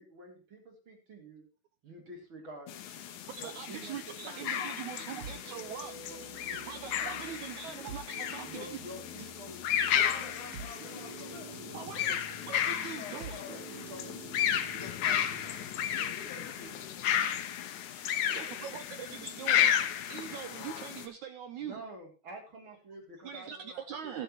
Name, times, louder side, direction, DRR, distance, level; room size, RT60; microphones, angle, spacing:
voice 1, 0.0-1.5 1.8-3.0 3.4-5.3 6.1-7.9 8.4-10.2 10.8-11.9 13.5-15.5 15.9-16.9 21.6-24.2, right 1 dB, 30° right, 1 dB, 4.2 m, -50 dB
sound 1, 2.7-21.1, left 9 dB, 65° left, 2.3 m, -33 dB
voice 2, 3.3-6.0 6.7-8.8 11.7-13.4 18.3-19.7 20.1-21.8 23.2-24.2, right 8 dB, 75° right, 9 dB, 1.8 m, -42 dB
sound 2, 5.2-15.9, right 4 dB, 55° right, 2.7 m, -49 dB
voice 3, 10.0-12.1 13.0-13.6 15.0-15.6 16.1-17.3 18.1-18.8, left 4 dB, 90° left, -1 dB, 8.8 m, -50 dB
21.5 x 7.6 x 3.0 m, 0.34 s
omnidirectional pair, 4.4 m